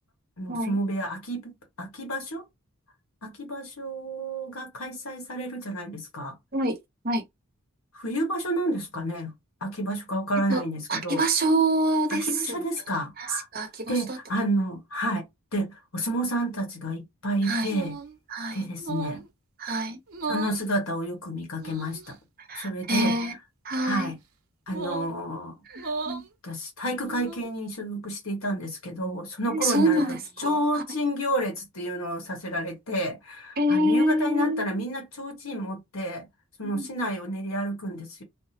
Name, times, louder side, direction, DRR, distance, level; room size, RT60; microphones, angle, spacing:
voice 1, 0.4-2.4 3.2-6.3 7.9-9.3 9.6-11.2 12.1-13.5 13.9-15.3 15.5-17.9 18.5-19.2 20.3-22.2 22.6-23.1 23.8-24.2 24.7-25.5 26.4-30.0 30.4-36.3 36.6-38.2, right 1 dB, 70° left, 1.1 m, -30 dB
voice 2, 10.9-12.6 13.2-14.2 17.4-17.7 18.3-18.7 19.6-20.0 22.4-23.3 23.6-24.1 25.7-26.3 29.5-30.8 33.6-34.7 36.7-36.9, right 1 dB, 40° right, 0.8 m, -26 dB
sound 1, 17.7-18.2 18.8-19.3 20.1-20.6 21.6-22.1 23.0-23.3 24.7-25.1 25.7-26.3 26.9-27.5, right 4 dB, 75° right, 0.8 m, -35 dB
3.5 x 2.0 x 2.8 m
head